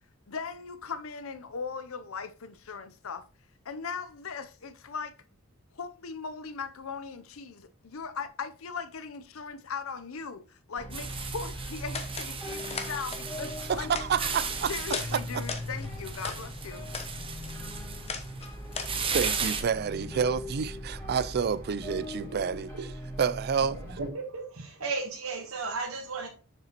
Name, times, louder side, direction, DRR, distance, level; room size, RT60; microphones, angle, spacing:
voice 1, 0.3-3.2 3.6-5.1 5.7-13.9 14.7-16.9, left 5 dB, 75° left, 0.7 m, -39 dB
sound 1, 10.8-24.1, left 1 dB, 10° left, 2.3 m, -40 dB
sound 2, 10.9-19.6, right 5 dB, 25° right, 0.9 m, -36 dB
sound 3, 11.9-12.3 12.6-13.2 13.6-14.5 14.9-15.1 15.4-16.4 16.8-17.1 17.4-19.3, left 5 dB, 30° left, 0.9 m, -38 dB
voice 2, 13.7-14.7 19.1-22.7 23.2-24.0, right 6 dB, 50° right, 0.4 m, -29 dB
voice 3, 23.9-26.3, right 4 dB, 80° right, 1.2 m, -34 dB
6.9 x 6.7 x 2.9 m
head